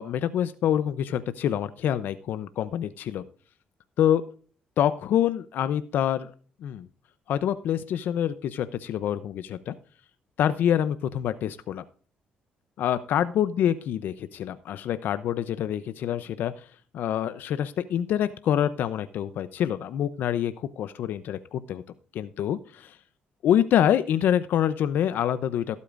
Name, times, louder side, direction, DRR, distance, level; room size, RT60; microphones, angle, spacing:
voice 1, 0.0-3.2 4.0-4.2 4.8-6.3 6.6-6.9 7.3-9.7 10.4-11.8 12.8-16.7 16.9-21.8 22.1-23.0 23.4-25.8, left 10 dB, 75° left, 13 dB, 0.6 m, -26 dB
17.0 x 8.4 x 2.5 m, 0.41 s
cardioid pair, 120°, 3 cm